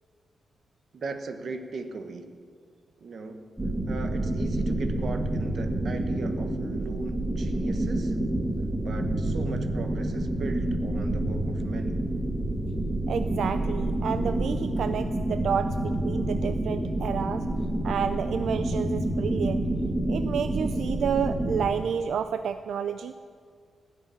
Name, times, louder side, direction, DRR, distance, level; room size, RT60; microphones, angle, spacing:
voice 1, 0.9-2.5 3.0-3.5 3.9-8.2 8.8-12.0, right 3 dB, 50° right, 7 dB, 1.1 m, -38 dB
sound 1, 3.6-21.7, right 1 dB, 15° right, 1.4 m, -28 dB
voice 2, 13.1-17.5 17.8-19.6 20.1-23.1, right 7 dB, 70° right, 10 dB, 0.4 m, -30 dB
16.0 x 6.6 x 9.9 m, 2.1 s
wide cardioid pair, 170°, 0 cm